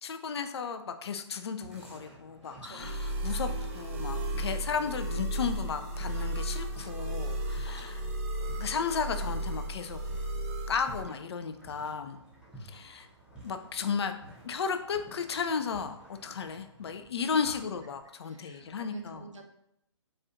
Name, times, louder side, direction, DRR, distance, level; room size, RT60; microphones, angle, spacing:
voice 1, 0.0-3.0 3.2-3.5 3.7-7.9 8.6-10.0 10.7-12.2 12.6-13.1 13.4-14.1 14.4-19.2, left 6 dB, 60° left, 8 dB, 0.4 m, -34 dB
sound 1, 1.6-18.1, right 1 dB, 5° right, 0.7 m, -53 dB
voice 2, 2.4-3.2 7.6-8.3 17.4-17.7 18.2-19.4, right 3 dB, 80° right, 3 dB, 0.7 m, -49 dB
sound 2, 2.8-11.0, right 1 dB, 30° right, 0.4 m, -34 dB
4.2 x 2.3 x 2.5 m, 0.77 s
figure-of-eight pair, 140°, 16 cm